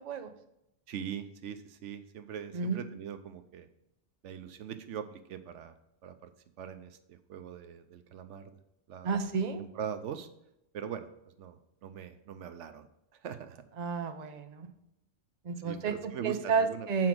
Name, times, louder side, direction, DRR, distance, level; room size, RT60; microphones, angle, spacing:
voice 1, 0.9-3.7 4.2-5.8 6.0-6.3 6.6-8.6 8.9-9.3 9.6-10.3 10.7-11.1 11.4-12.9 13.2-13.6 15.6-16.9, right 8 dB, 85° right, 9 dB, 1.0 m, -41 dB
voice 2, 9.0-9.6 13.8-14.7 15.4-17.1, right 5 dB, 40° right, 6 dB, 0.8 m, -31 dB
7.6 x 4.8 x 6.0 m, 0.83 s
omnidirectional pair, 1.2 m